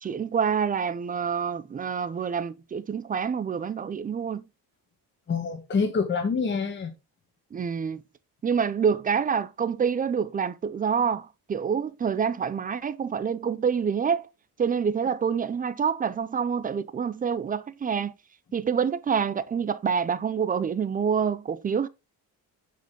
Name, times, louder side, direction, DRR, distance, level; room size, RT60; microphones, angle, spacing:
voice 1, 0.0-4.4 7.5-8.0 8.4-14.3 14.6-18.1 18.5-21.9, right 6 dB, 25° right, 0.3 m, -27 dB
voice 2, 5.3-6.9, left 5 dB, 30° left, 1.2 m, -26 dB
9.1 x 5.1 x 3.6 m
cardioid pair, 180°, 40 cm